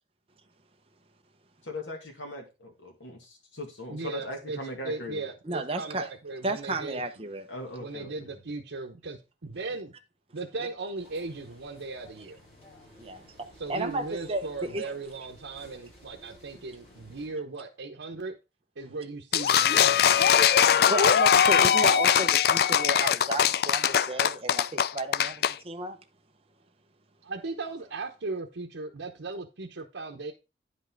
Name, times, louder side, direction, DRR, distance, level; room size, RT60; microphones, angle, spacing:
voice 1, 1.7-5.3 7.5-8.4, left 1 dB, 90° left, 2.4 m, -39 dB
voice 2, 3.9-7.0 7.8-9.9 10.3-12.4 13.6-18.3 18.8-20.5 27.2-30.3, right 3 dB, 85° right, 0.9 m, -37 dB
voice 3, 5.4-6.1 6.4-7.4 13.0-13.2 13.7-14.9 20.1-20.2 20.9-26.0, right 2 dB, 30° right, 0.8 m, -33 dB
sound 1, 10.9-17.3, equal, 35° left, 4.2 m, -55 dB
sound 2, 19.3-25.5, left 8 dB, 55° left, 0.3 m, -21 dB
9.8 x 5.4 x 3.9 m
head